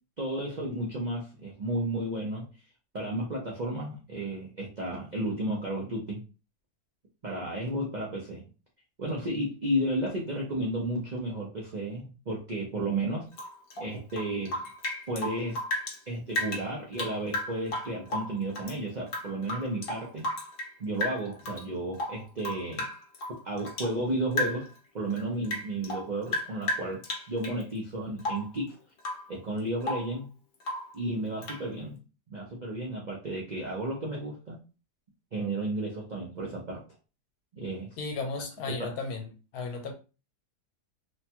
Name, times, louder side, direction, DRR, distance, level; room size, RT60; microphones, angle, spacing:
voice 1, 0.2-2.4 2.9-6.2 7.2-8.5 9.0-13.3 13.8-14.6 15.1-15.6 16.1-20.3 20.8-22.9 23.4-28.7 29.3-30.3 30.9-32.0 32.3-34.6 35.3-36.8 37.5-38.0 38.7-38.9, right 1 dB, 80° right, -3 dB, 0.4 m, -33 dB
Rain / Drip, 13.3-16.0 16.3-18.8 19.1-20.7 21.0-21.6 21.9-24.0 24.3-24.8 25.1-27.6 28.2-28.6 29.0-29.3 29.6-30.1 30.6-31.0 31.4-31.7, left 1 dB, 50° left, 0.7 m, -34 dB
voice 2, 38.0-39.9, left 3 dB, 70° left, 4 dB, 1.0 m, -35 dB
3.1 x 2.2 x 2.8 m, 0.32 s
omnidirectional pair, 1.8 m